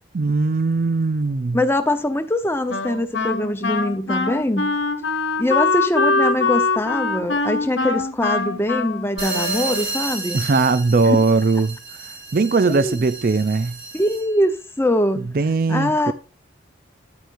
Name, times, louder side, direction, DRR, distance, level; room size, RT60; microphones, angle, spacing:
voice 1, 0.1-1.6 10.3-11.8 12.0-13.8 15.3-16.1, right 3 dB, 50° right, 0.4 m, -19 dB
voice 2, 1.5-4.8 5.4-10.4 11.1-11.2 12.7-13.0 13.9-15.3 15.7-16.1, left 1 dB, 10° left, 0.8 m, -22 dB
Wind instrument woodwind instrument, 2.7-10.1, left 3 dB, 75° left, 1.3 m, -23 dB
sound 1, 9.2-14.4, right 3 dB, 70° right, 5.1 m, -32 dB
10.5 x 9.3 x 2.6 m
head